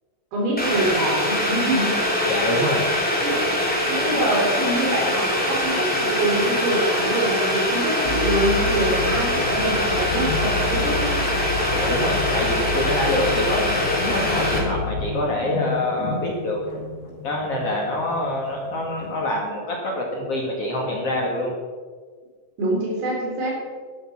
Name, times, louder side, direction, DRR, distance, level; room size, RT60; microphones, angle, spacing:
voice 1, 0.3-1.9 3.2-3.4 3.9-11.2 22.6-23.6, right 1 dB, 60° right, -2 dB, 5.6 m, -25 dB
Boiling, 0.6-14.6, left 1 dB, 5° left, 1.4 m, -23 dB
voice 2, 2.3-2.9 11.7-16.6 17.2-21.6, left 1 dB, 45° left, -2 dB, 2.1 m, -25 dB
sound 1, 8.1-15.1, left 4 dB, 85° left, 3.9 m, -30 dB
sound 2, 10.0-19.2, left 2 dB, 65° left, 6.0 m, -36 dB
12.5 x 11.0 x 6.0 m, 1.5 s
omnidirectional pair, 5.4 m